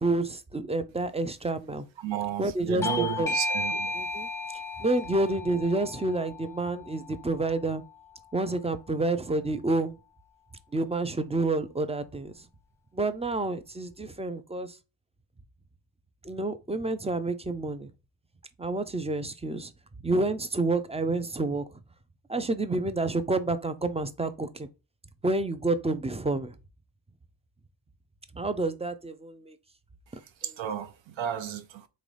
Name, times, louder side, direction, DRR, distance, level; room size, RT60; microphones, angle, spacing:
voice 1, 0.0-1.9 2.4-3.3 3.9-4.3 4.8-7.8 8.3-10.0 10.7-12.3 12.9-14.8 16.2-17.9 18.6-19.7 20.0-21.6 22.3-24.7 25.2-26.5 28.3-29.6, right 2 dB, 15° right, 0.4 m, -29 dB
voice 2, 2.0-3.9 30.4-31.9, right 9 dB, 75° right, 0.7 m, -33 dB
Bell / Doorbell, 2.8-8.0, left 2 dB, 5° left, 0.7 m, -34 dB
3.9 x 3.0 x 3.2 m
wide cardioid pair, 90°, 46 cm